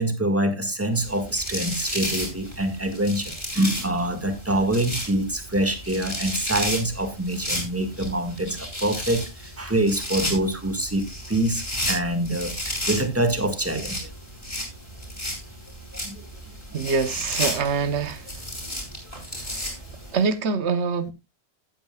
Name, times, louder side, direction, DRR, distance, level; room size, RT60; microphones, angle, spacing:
voice 1, 0.0-9.2 9.6-14.1 16.0-16.2 16.7-16.8, right 1 dB, 15° right, 1.8 m, -25 dB
sound 1, 1.0-20.2, equal, 25° left, 4.5 m, -33 dB
voice 2, 16.7-18.2 19.6-19.7 20.1-21.1, right 5 dB, 85° right, 1.2 m, -24 dB
16.0 x 8.7 x 2.3 m
omnidirectional pair, 1.1 m